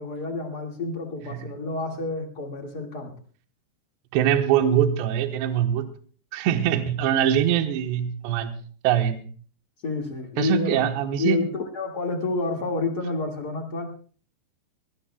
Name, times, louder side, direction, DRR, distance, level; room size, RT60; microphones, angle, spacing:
voice 1, 0.0-3.1 9.8-10.8 11.2-13.9, left 3 dB, 45° left, 2 dB, 1.2 m, -29 dB
voice 2, 4.1-5.9 6.3-8.5 8.8-9.2 10.4-11.4, right 9 dB, 75° right, 6 dB, 3.2 m, -23 dB
22.5 x 19.0 x 2.3 m, 0.43 s
omnidirectional pair, 5.2 m